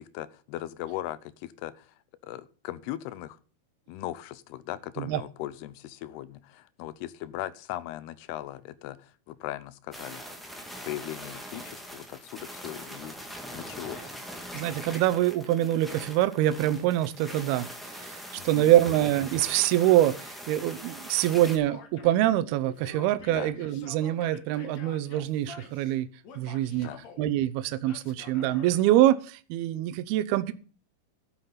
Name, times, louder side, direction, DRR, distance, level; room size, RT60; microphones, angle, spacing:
voice 1, 0.0-1.9 2.2-3.4 3.9-10.2 10.8-13.1 13.5-14.1 18.4-18.7 23.3-23.5 26.7-27.0, left 14 dB, 85° left, 17 dB, 2.7 m, -38 dB
sound 1, 9.9-21.6, equal, ahead, 0.5 m, -42 dB
voice 2, 14.5-26.1 26.4-26.9 27.2-30.5, right 13 dB, 80° right, 13 dB, 2.6 m, -25 dB
Male speech man speaking / Yell, 21.6-22.3 22.7-26.0 26.2-27.2 27.8-29.2, left 5 dB, 50° left, 2.6 m, -48 dB
12.0 x 7.6 x 5.6 m, 0.39 s
omnidirectional pair, 4.6 m